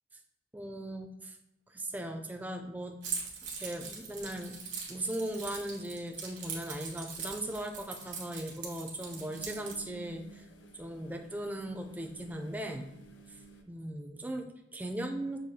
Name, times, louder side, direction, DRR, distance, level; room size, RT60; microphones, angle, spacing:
voice 1, 0.5-1.4 1.7-2.9 3.6-4.6 4.9-10.5 10.7-13.0 13.3-13.4 13.7-15.4, right 1 dB, 10° right, 4 dB, 0.3 m, -38 dB
Keys jangling, 3.0-9.8, right 5 dB, 75° right, 1.0 m, -41 dB
sound 1, 9.0-13.6, right 4 dB, 75° left, 0.5 m, -53 dB
6.3 x 2.2 x 2.7 m, 0.91 s
head